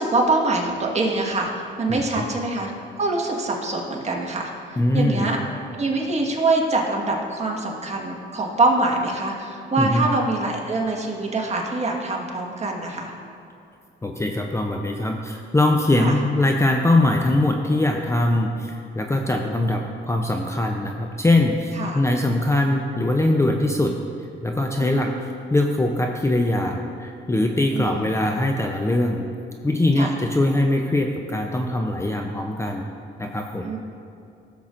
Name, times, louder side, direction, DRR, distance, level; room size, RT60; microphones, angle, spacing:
voice 1, 0.0-1.5 1.8-2.7 3.0-4.5 4.9-5.4 5.7-13.1 16.0-16.1 21.7-22.0 24.8-25.1 27.7-28.1 30.0-30.1 33.6-33.8, right 2 dB, 35° right, -1 dB, 1.6 m, -24 dB
voice 2, 1.9-2.2 4.8-5.4 9.8-10.1 14.0-23.9 24.4-25.1 25.5-29.3 29.6-32.9 33.2-33.8, left 1 dB, 15° left, 2 dB, 0.6 m, -22 dB
15.0 x 7.2 x 2.6 m, 2.6 s
cardioid pair, 90°, 20 cm